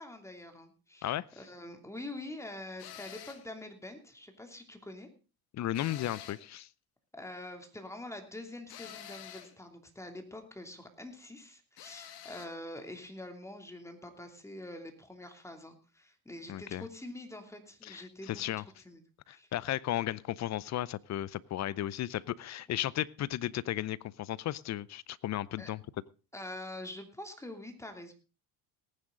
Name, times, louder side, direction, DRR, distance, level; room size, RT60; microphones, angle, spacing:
voice 1, 0.0-5.1 7.1-19.0 19.3-19.5 20.0-20.1 22.4-22.6 25.6-25.7 26.3-28.1, left 1 dB, 5° left, 2.9 m, -45 dB
sound 1, 2.8-3.5 5.7-6.5 8.7-9.6 11.8-12.5, left 11 dB, 65° left, 2.2 m, -48 dB
voice 2, 5.5-6.7 16.5-16.8 17.8-18.6 19.3-25.8, left 13 dB, 40° left, 0.6 m, -35 dB
18.5 x 9.9 x 3.9 m
supercardioid pair, 100°, 42 cm